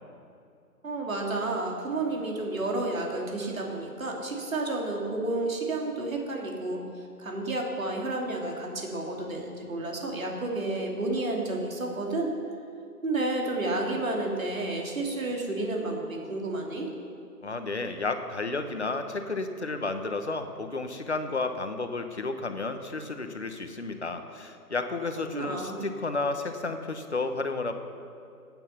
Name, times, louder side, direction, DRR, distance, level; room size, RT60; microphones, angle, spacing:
voice 1, 0.8-6.8 7.2-12.3 13.0-16.9 25.3-25.8, right 2 dB, 55° right, 0 dB, 2.8 m, -31 dB
voice 2, 17.4-27.7, left 3 dB, 45° left, 7 dB, 1.0 m, -32 dB
15.0 x 9.1 x 5.8 m, 2.5 s
figure-of-eight pair, 175°, 47 cm